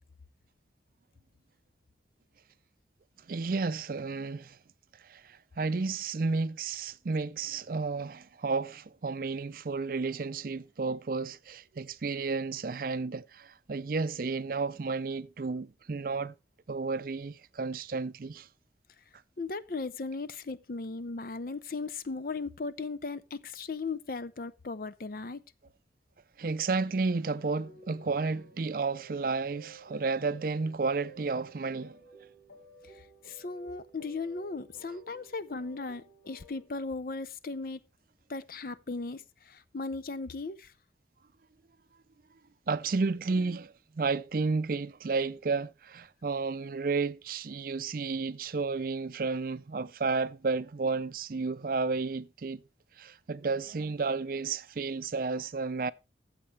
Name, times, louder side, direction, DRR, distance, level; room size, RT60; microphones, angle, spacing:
voice 1, 3.3-4.6 5.0-16.3 16.7-18.5 26.4-32.0 42.7-52.6 53.0-55.9, right 4 dB, 50° right, 0.5 m, -32 dB
voice 2, 19.4-25.4 32.9-37.8 38.3-40.7, left 3 dB, 50° left, 0.5 m, -37 dB
sound 1, 26.8-36.7, right 2 dB, 80° left, 2.2 m, -54 dB
14.0 x 7.5 x 3.2 m
head